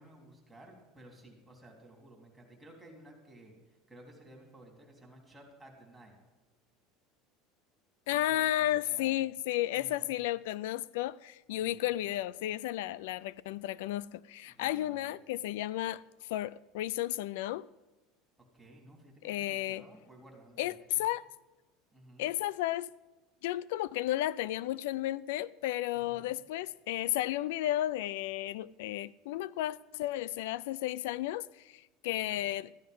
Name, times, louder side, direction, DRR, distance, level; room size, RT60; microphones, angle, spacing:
voice 1, 0.0-6.2 8.1-8.5 8.9-9.2 9.7-10.1 11.6-11.9 14.5-15.1 18.5-20.8 21.9-22.3 26.1-26.3 32.2-32.4, right 1 dB, 5° right, 3.6 m, -55 dB
voice 2, 8.1-17.7 19.2-19.8 20.6-21.2 22.2-22.9 23.4-32.8, left 14 dB, 85° left, 0.3 m, -33 dB
14.5 x 11.0 x 5.4 m
supercardioid pair, 140°, 0 cm